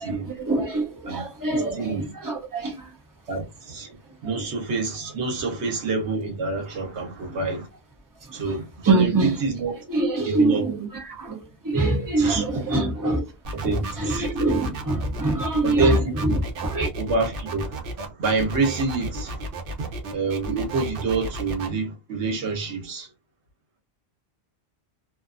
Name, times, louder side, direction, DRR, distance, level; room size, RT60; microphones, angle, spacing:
voice 1, 0.0-2.9 4.1-4.2 7.2-7.4 8.2-8.6 8.8-9.4 9.9-13.2 13.6-16.9, right 2 dB, 20° right, 0.6 m, -25 dB
voice 2, 1.5-2.0 3.3-7.7 8.3-9.8 10.3-10.6 12.2-12.4 12.7-12.9 13.5-14.3 15.6-16.4 17.0-19.5 19.8-23.1, right 3 dB, 75° right, 1.1 m, -27 dB
sound 1, 13.4-21.7, right 2 dB, 60° right, 0.7 m, -33 dB
2.5 x 2.3 x 2.4 m
omnidirectional pair, 1.2 m